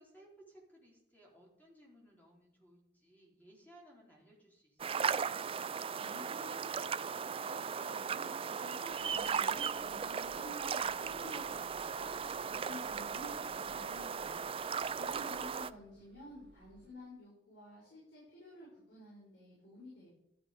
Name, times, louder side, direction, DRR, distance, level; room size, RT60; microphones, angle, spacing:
voice 1, 0.0-5.0 14.8-15.8, equal, 10° left, -3 dB, 3.9 m, -61 dB
sound 1, 4.8-15.7, right 6 dB, 30° right, 0.4 m, -37 dB
voice 2, 5.9-6.8 7.5-12.1 12.4-14.4 15.0-20.1, equal, 70° left, -6 dB, 7.0 m, -51 dB
sound 2, 8.9-17.0, equal, 70° right, 2.3 m, -64 dB
13.5 x 12.5 x 5.3 m, 0.75 s
head